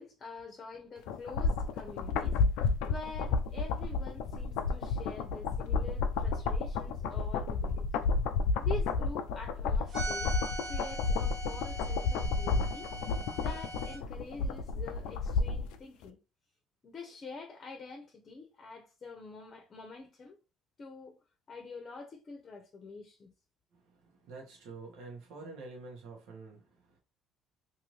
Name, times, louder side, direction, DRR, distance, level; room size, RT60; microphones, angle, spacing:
voice 1, 0.0-7.9 8.6-10.4 10.6-12.9 13.4-16.2 16.8-20.4 20.8-21.2 21.5-23.3, left 4 dB, 40° left, 0.7 m, -46 dB
sound 1, 1.1-15.7 16.0-16.1, left 4 dB, 90° left, 0.3 m, -31 dB
sound 2, 9.9-14.0, right 2 dB, 50° right, 1.1 m, -41 dB
voice 2, 23.7-27.0, right 3 dB, 80° right, 1.1 m, -48 dB
2.7 x 2.6 x 3.0 m
cardioid pair, 100°, 0 cm